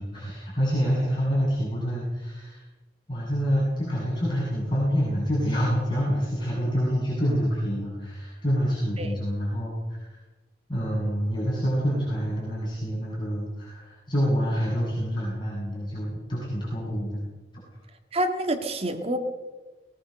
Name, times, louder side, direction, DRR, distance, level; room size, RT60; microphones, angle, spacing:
voice 1, 0.0-2.6 3.1-10.2 10.7-17.2, equal, 25° left, -7 dB, 7.9 m, -27 dB
voice 2, 18.1-19.2, right 1 dB, 35° right, 4 dB, 2.0 m, -27 dB
21.0 x 20.0 x 6.8 m, 1.2 s
head